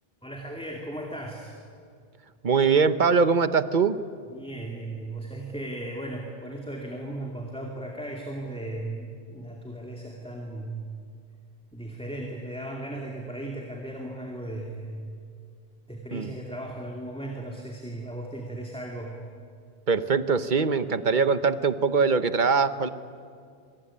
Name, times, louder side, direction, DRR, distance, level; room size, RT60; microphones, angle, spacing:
voice 1, 0.2-1.5 4.3-10.9 11.7-14.9 15.9-19.2, right 1 dB, 5° left, 0 dB, 2.6 m, -36 dB
voice 2, 2.4-4.0 16.1-16.3 19.9-22.9, right 5 dB, 50° right, 12 dB, 1.1 m, -22 dB
25.0 x 24.0 x 9.9 m, 2.3 s
omnidirectional pair, 1.0 m